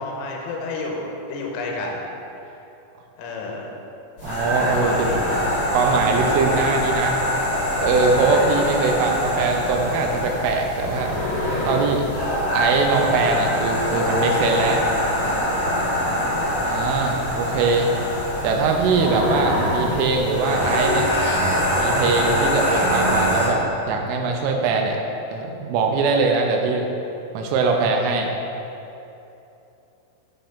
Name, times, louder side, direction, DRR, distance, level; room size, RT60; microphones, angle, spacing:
voice 1, 0.0-2.0 3.2-3.7 4.7-5.6 8.1-8.5 17.8-17.9 19.0-19.2, left 3 dB, 85° left, -1 dB, 3.7 m, -31 dB
sound 1, 4.2-23.5, left 1 dB, 55° left, 1.2 m, -24 dB
voice 2, 4.2-5.1 5.7-7.2 7.8-11.1 11.7-12.1 12.5-14.8 16.6-17.9 18.4-21.1 21.8-25.0 25.3-26.9 27.3-28.3, right 4 dB, 80° right, 2 dB, 3.1 m, -22 dB
Speech synthesizer, 20.5-23.8, right 2 dB, 60° right, 3.3 m, -30 dB
10.5 x 4.5 x 5.2 m, 2.9 s
omnidirectional pair, 5.9 m